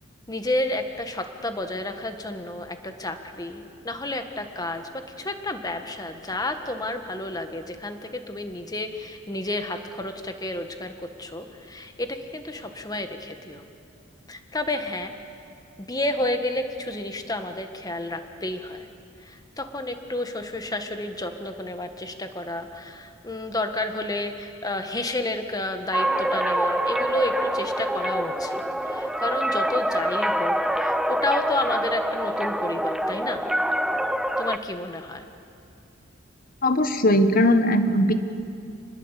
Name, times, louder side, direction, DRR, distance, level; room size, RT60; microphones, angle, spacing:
voice 1, 0.3-10.9 11.2-13.6 14.3-15.1 15.8-18.9 19.2-33.4 34.4-35.2, left 1 dB, 20° left, 6 dB, 1.6 m, -31 dB
sound 1, 25.9-34.6, right 1 dB, 5° right, 0.6 m, -25 dB
voice 2, 36.6-38.1, left 1 dB, 45° left, 9 dB, 1.5 m, -19 dB
27.0 x 20.5 x 8.3 m, 2.5 s
head